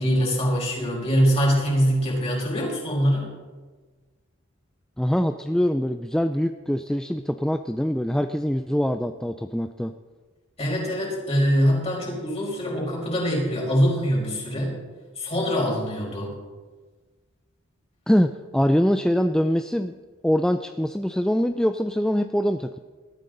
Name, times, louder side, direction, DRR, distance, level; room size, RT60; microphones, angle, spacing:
voice 1, 0.0-3.3 10.6-14.8 15.2-16.3, equal, 30° left, -3 dB, 5.4 m, -23 dB
voice 2, 5.0-9.9 18.1-19.9 20.2-22.8, equal, 5° left, 8 dB, 0.4 m, -23 dB
20.0 x 13.5 x 4.0 m, 1.4 s
head